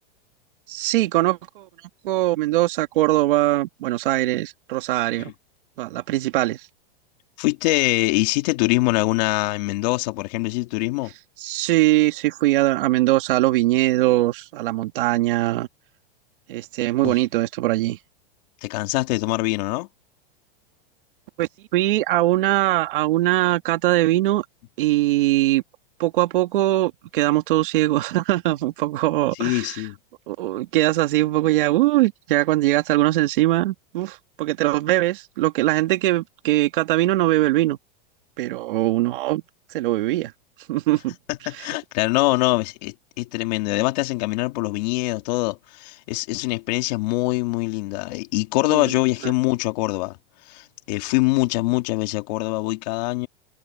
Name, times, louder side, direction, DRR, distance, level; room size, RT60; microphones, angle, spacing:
voice 1, 0.7-1.7 2.0-5.3 5.8-6.6 11.4-15.7 16.5-18.0 21.4-24.4 24.8-25.6 26.0-29.8 30.3-37.8 38.4-39.4 39.7-40.3 40.7-41.2 41.5-41.7 48.7-48.9 49.2-49.3, right 16 dB, 60° right, 2.3 m, -21 dB
voice 2, 7.4-11.1 17.0-17.1 18.6-19.9 29.4-30.0 41.3-50.2 50.5-53.3, left 21 dB, 45° left, 2.3 m, -23 dB
supercardioid pair, 165°, 29 cm